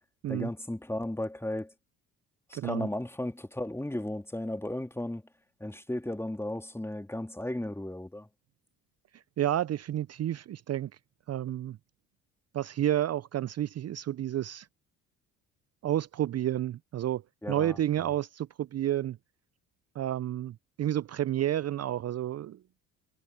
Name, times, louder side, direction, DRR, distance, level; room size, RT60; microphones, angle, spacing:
voice 1, 0.3-1.7 2.5-5.2 5.6-8.3 17.4-18.1, left 1 dB, 5° left, 2.5 m, -35 dB
voice 2, 2.5-2.9 9.1-10.9 11.3-11.8 12.5-14.7 15.8-17.2 17.5-19.2 19.9-22.6, right 12 dB, 40° right, 0.7 m, -30 dB
hypercardioid pair, 55°, 38 cm